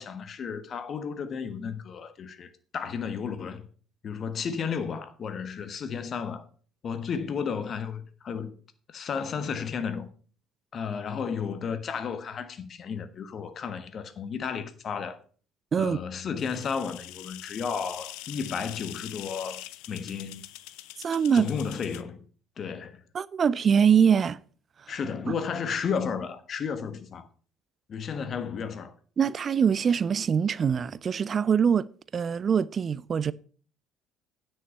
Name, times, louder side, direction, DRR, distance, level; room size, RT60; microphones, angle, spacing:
voice 1, 0.0-3.7 4.0-6.4 6.8-8.5 8.9-10.1 10.7-15.2 15.8-20.4 21.3-22.2 22.6-23.0 24.9-27.3 27.9-28.9, left 6 dB, 45° left, 1.3 m, -33 dB
sound 1, 16.4-22.0, left 16 dB, 65° left, 0.5 m, -43 dB
voice 2, 21.0-21.5 23.1-24.4 25.3-25.4 29.2-31.9 32.1-33.3, right 7 dB, 40° right, 0.4 m, -23 dB
9.7 x 5.6 x 7.1 m
figure-of-eight pair, 55°, 0 cm